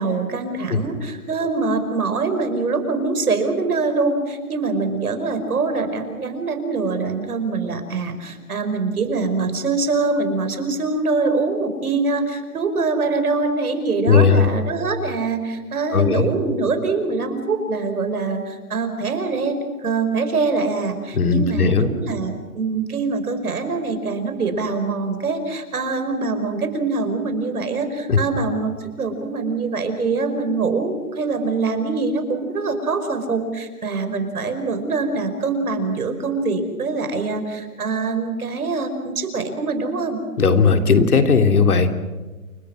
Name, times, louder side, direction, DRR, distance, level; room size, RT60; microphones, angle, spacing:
voice 1, 0.0-40.2, right 3 dB, 80° right, 7 dB, 5.5 m, -24 dB
voice 2, 14.1-14.4 15.9-16.3 21.2-21.9 28.1-28.2 40.4-41.9, left 5 dB, 80° left, 6 dB, 3.3 m, -16 dB
29.0 x 23.0 x 6.3 m, 1.3 s
hypercardioid pair, 170°, 44 cm